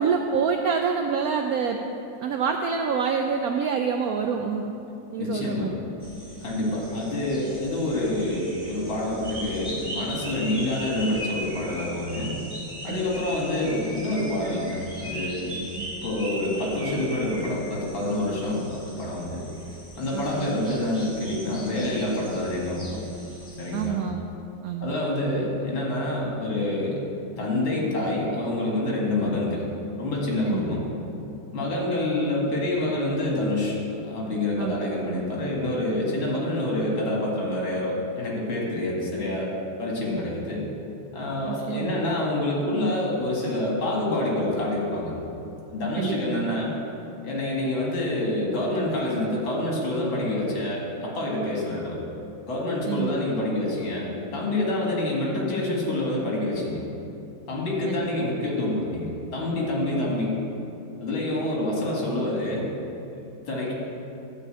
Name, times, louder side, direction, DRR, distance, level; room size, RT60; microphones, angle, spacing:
voice 1, 0.0-1.8 2.2-4.7 5.1-5.7 12.9-13.1 15.8-15.9 20.1-20.6 23.7-24.2 24.6-24.9 30.5-30.7 34.6-34.8 35.1-35.2 41.5-41.9 45.9-46.5 52.9-53.1 57.9-58.1, right 6 dB, 90° right, 4 dB, 0.7 m, -27 dB
voice 2, 5.2-5.7 6.4-12.3 12.8-15.6 15.9-19.4 20.0-23.0 23.6-24.0 24.8-27.0 27.4-29.7 30.0-30.9 31.5-33.8 34.0-39.5 39.8-40.7 41.1-45.1 45.7-46.7 47.2-52.0 52.5-56.8 57.5-60.4 61.0-62.7 63.5-63.7, left 1 dB, 80° left, -3 dB, 2.7 m, -27 dB
sound 1, 6.0-23.9, right 1 dB, 5° left, 1.8 m, -39 dB
11.5 x 4.1 x 7.9 m, 2.8 s
omnidirectional pair, 2.1 m